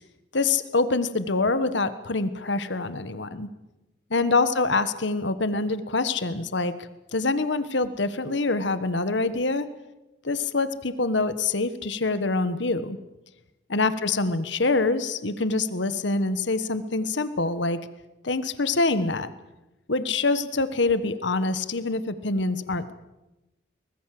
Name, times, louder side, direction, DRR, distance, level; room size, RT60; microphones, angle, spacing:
voice 1, 0.3-3.5 4.1-9.7 10.2-13.0 13.7-17.8 18.2-19.3 19.9-22.9, left 3 dB, 75° left, 12 dB, 1.4 m, -25 dB
23.5 x 20.0 x 7.7 m, 0.99 s
head